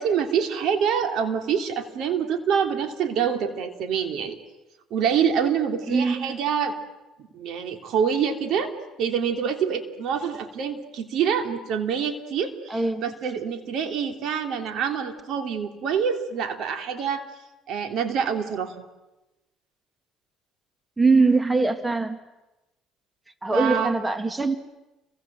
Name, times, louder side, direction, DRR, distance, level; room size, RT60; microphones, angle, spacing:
voice 1, 0.0-4.4 4.9-6.8 7.2-17.2 17.7-18.7 23.5-23.9, right 7 dB, 65° right, 7 dB, 3.2 m, -26 dB
voice 2, 5.9-6.4 12.7-13.0 21.0-22.2 23.4-24.6, right 3 dB, 15° right, 9 dB, 1.9 m, -22 dB
30.0 x 24.0 x 7.7 m, 1.0 s
cardioid pair, 95°, 0 cm